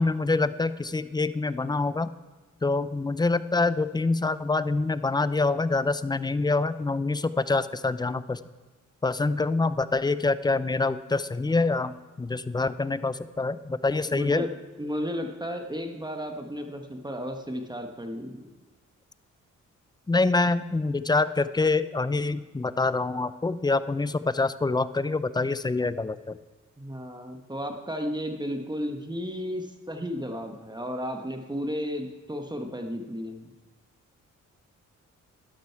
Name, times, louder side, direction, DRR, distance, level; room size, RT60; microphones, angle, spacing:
voice 1, 0.0-2.1 2.6-8.4 9.0-14.5 20.1-26.4, left 3 dB, 15° left, 15 dB, 0.5 m, -26 dB
voice 2, 14.1-14.5 14.8-18.4 26.8-33.5, equal, 15° right, 4 dB, 1.3 m, -33 dB
11.5 x 11.5 x 4.6 m, 1.2 s
cardioid pair, 70°, 31 cm